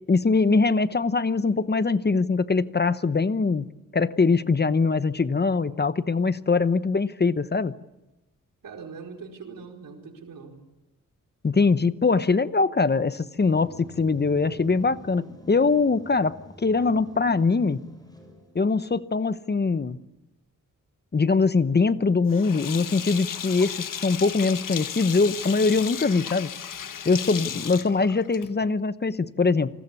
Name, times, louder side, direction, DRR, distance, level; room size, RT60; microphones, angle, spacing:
voice 1, 0.1-3.7 3.9-7.7 11.4-17.8 18.5-20.0 21.1-23.7 24.0-26.5 27.0-29.7, left 4 dB, 30° left, 14 dB, 1.0 m, -22 dB
voice 2, 8.6-10.5 27.3-27.7, right 5 dB, 85° right, 2 dB, 4.7 m, -42 dB
sound 1, 13.4-18.6, equal, 10° left, 7.3 m, -46 dB
Sink (filling or washing), 22.3-28.7, left 8 dB, 80° left, 1.3 m, -35 dB
28.0 x 20.0 x 8.5 m, 0.94 s
cardioid pair, 80°, 32 cm